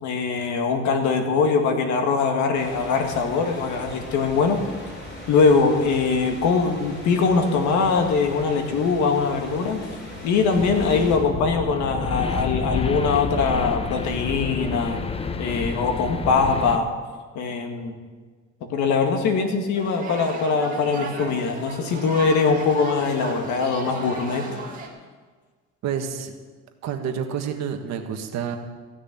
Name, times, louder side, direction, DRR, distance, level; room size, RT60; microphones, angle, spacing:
voice 1, 0.0-4.6 5.3-9.8 10.2-15.0 15.4-16.9 17.4-18.0 18.7-24.4, left 4 dB, 75° left, 4 dB, 2.1 m, -22 dB
sound 1, 2.5-11.2, left 1 dB, 40° left, 5.0 m, -38 dB
sound 2, 10.5-16.8, left 4 dB, 20° left, 0.7 m, -29 dB
sound 3, 19.7-24.9, right 3 dB, 30° right, 2.3 m, -36 dB
voice 2, 25.8-26.3 26.8-28.6, right 8 dB, 65° right, 5 dB, 1.6 m, -28 dB
15.0 x 6.5 x 9.3 m, 1.5 s
cardioid pair, 145°, 29 cm